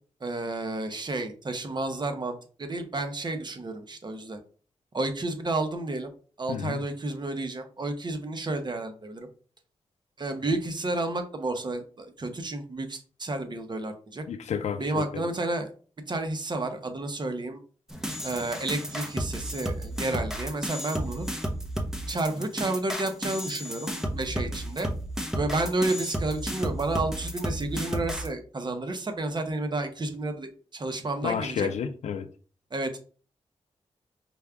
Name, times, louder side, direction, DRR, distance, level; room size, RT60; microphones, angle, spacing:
voice 1, 0.2-4.4 4.9-6.1 6.4-9.3 10.2-14.2 14.8-15.7 16.1-17.6 18.2-21.3 22.1-24.9 25.3-31.7 32.7-33.0, right 2 dB, 40° right, 0.9 m, -31 dB
voice 2, 14.3-15.2 31.2-32.3, left 7 dB, 90° left, 0.4 m, -31 dB
sound 1, 17.9-28.3, equal, 5° right, 0.7 m, -32 dB
5.2 x 2.3 x 3.5 m
cardioid pair, 65°, 11 cm